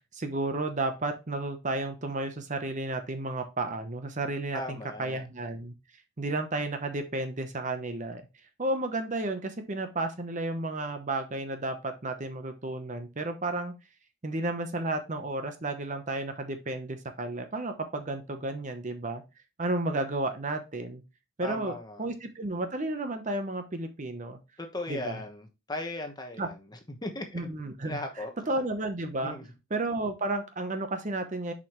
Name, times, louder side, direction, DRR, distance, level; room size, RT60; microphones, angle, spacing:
voice 1, 0.1-5.7 6.2-8.2 8.6-13.7 14.2-19.2 19.6-21.0 21.4-24.4 24.9-25.2 26.4-26.5 27.3-28.0 28.5-29.4 29.7-31.5, right 2 dB, 35° right, 0.8 m, -32 dB
voice 2, 4.5-5.2 21.4-22.1 24.6-27.5 27.9-28.3 29.2-29.4, left 1 dB, 20° left, 1.1 m, -37 dB
7.0 x 5.0 x 3.0 m
head